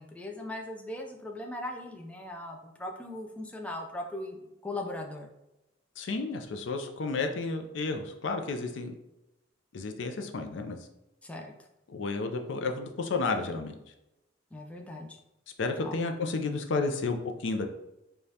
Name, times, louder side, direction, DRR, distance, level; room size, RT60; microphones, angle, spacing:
voice 1, 0.0-5.3 11.2-11.5 14.5-15.2 15.8-16.0, left 1 dB, 5° left, 1 dB, 0.3 m, -39 dB
voice 2, 6.0-8.9 9.7-10.8 11.9-13.7 15.6-17.7, left 3 dB, 70° left, 5 dB, 0.4 m, -32 dB
5.0 x 2.3 x 2.7 m, 0.90 s
head